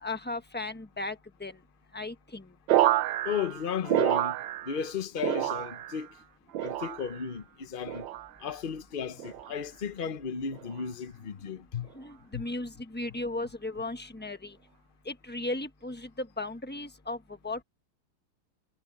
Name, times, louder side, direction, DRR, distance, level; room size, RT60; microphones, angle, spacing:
voice 1, 0.0-1.6 1.9-2.5 11.9-14.6 15.0-17.2 17.4-17.6, left 2 dB, 10° left, 0.7 m, -36 dB
sound 1, 2.7-4.9 5.2-6.1 6.5-7.2 7.9-8.3 9.2-9.6 10.5-10.8, right 13 dB, 70° right, 1.3 m, -28 dB
voice 2, 3.2-4.4 4.7-6.1 6.6-8.1 8.4-11.9 12.3-12.5, left 7 dB, 60° left, 0.5 m, -34 dB
omnidirectional pair, 2.4 m